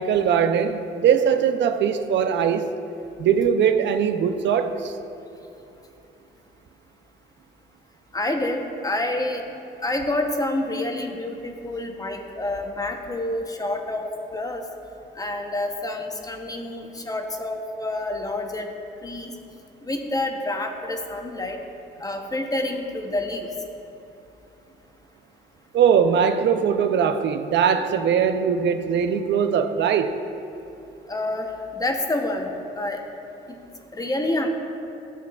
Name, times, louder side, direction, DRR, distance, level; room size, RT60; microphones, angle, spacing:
voice 1, 0.0-2.7 3.2-4.9 25.7-30.1, right 7 dB, 65° right, 0.5 m, -21 dB
voice 2, 8.1-9.4 9.8-14.1 14.3-14.6 15.2-18.7 19.0-19.3 19.8-21.6 22.0-23.5 31.1-33.0 33.5-33.6 33.9-34.5, left 2 dB, 20° left, 0.8 m, -28 dB
12.0 x 6.8 x 2.3 m
cardioid pair, 90°, 20 cm